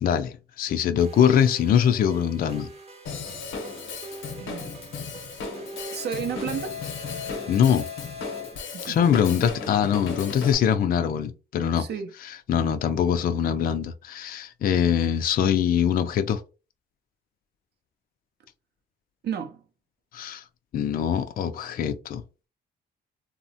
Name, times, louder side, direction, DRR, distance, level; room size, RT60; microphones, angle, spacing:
voice 1, 0.0-2.7 7.5-7.9 8.8-11.9 12.2-16.4 20.1-20.4 20.7-22.2, left 8 dB, 50° left, 0.4 m, -23 dB
sound 1, 1.0-9.1, left 2 dB, 30° right, 0.8 m, -41 dB
Drum kit / Drum, 3.1-10.6, left 4 dB, 85° left, 0.8 m, -36 dB
voice 2, 4.4-4.7 5.9-6.8 8.7-9.0 11.8-12.1 19.2-19.6, right 8 dB, 55° right, 0.5 m, -32 dB
2.8 x 2.1 x 2.7 m
cardioid pair, 90°, 20 cm